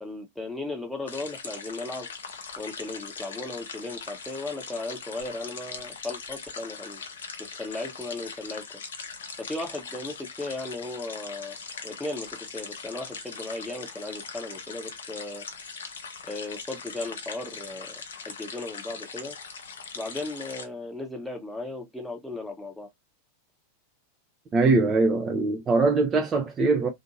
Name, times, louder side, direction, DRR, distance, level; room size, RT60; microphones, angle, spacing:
voice 1, 0.0-2.1 2.6-7.0 7.4-8.6 9.4-11.6 11.8-15.4 16.3-17.9 18.3-19.3 19.9-22.9, left 2 dB, ahead, 0.8 m, -36 dB
sound 1, 1.1-20.7, left 5 dB, 65° left, 0.6 m, -40 dB
voice 2, 24.5-26.9, right 3 dB, 25° right, 0.5 m, -22 dB
2.6 x 2.5 x 2.7 m
figure-of-eight pair, 90°, 0 cm